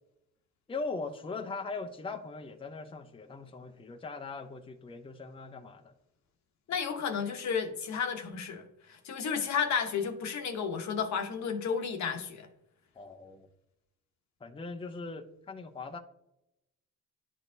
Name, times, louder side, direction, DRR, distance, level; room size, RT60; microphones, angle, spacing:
voice 1, 0.7-5.9 13.0-13.5 14.4-16.0, left 3 dB, 15° left, 6 dB, 0.6 m, -40 dB
voice 2, 6.7-12.5, left 6 dB, 65° left, 5 dB, 1.0 m, -32 dB
11.0 x 4.3 x 2.7 m, 0.86 s
cardioid pair, 90°, 30 cm